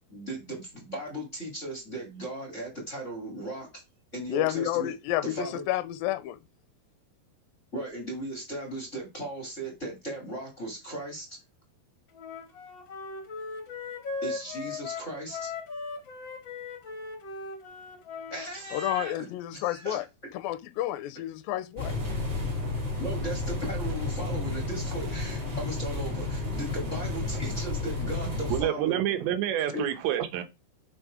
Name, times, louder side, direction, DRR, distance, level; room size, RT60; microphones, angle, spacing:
voice 1, 0.1-3.8 4.1-4.9 5.2-5.6 7.7-11.4 14.2-15.5 18.3-19.3 19.5-20.0 23.0-29.0 29.7-29.9, right 1 dB, 30° left, 1.4 m, -37 dB
voice 2, 4.3-6.4 18.7-20.0 20.3-22.0, left 14 dB, 80° left, 2.2 m, -30 dB
Wind instrument woodwind instrument, 12.1-18.5, left 4 dB, 50° left, 1.5 m, -38 dB
sound 1, 21.8-28.6, left 3 dB, 30° right, 3.6 m, -31 dB
voice 3, 28.5-30.4, right 11 dB, 85° right, 3.3 m, -28 dB
7.6 x 5.3 x 4.9 m
omnidirectional pair, 4.9 m